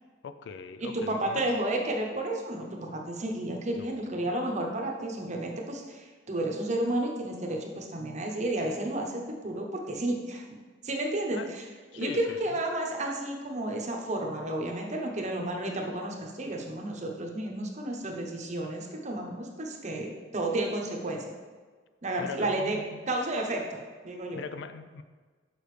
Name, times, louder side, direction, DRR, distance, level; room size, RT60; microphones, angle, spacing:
voice 1, 0.2-1.4 3.8-4.3 11.3-11.5 11.9-12.4 22.2-23.1 24.3-25.0, left 5 dB, 70° left, 11 dB, 0.3 m, -41 dB
voice 2, 0.8-10.4 10.8-11.6 11.9-21.3 22.0-22.8 23.1-23.6 24.0-24.4, right 1 dB, 40° right, 1 dB, 0.8 m, -32 dB
6.8 x 5.0 x 3.2 m, 1.5 s
head